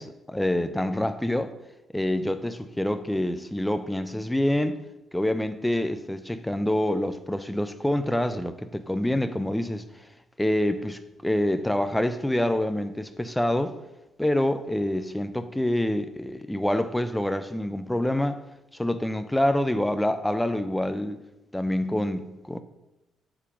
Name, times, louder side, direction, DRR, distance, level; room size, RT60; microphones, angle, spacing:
voice 1, 0.0-1.5 1.9-4.8 5.1-10.1 10.4-13.8 14.2-18.4 18.7-21.2 21.5-22.6, left 1 dB, 5° left, 0.7 m, -26 dB
8.4 x 7.4 x 5.3 m
figure-of-eight pair, 40°, 0 cm